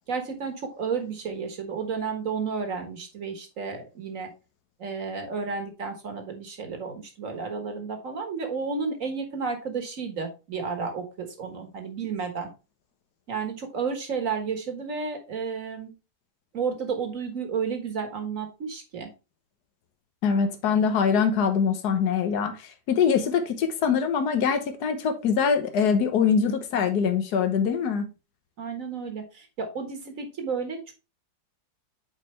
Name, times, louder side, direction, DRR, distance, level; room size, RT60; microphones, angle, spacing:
voice 1, 0.1-4.3 4.8-12.5 13.3-15.9 16.5-19.1 28.6-30.9, right 5 dB, 50° right, 1.8 m, -32 dB
voice 2, 20.2-28.1, left 6 dB, 70° left, 1.6 m, -23 dB
8.7 x 4.4 x 3.2 m
omnidirectional pair, 1.8 m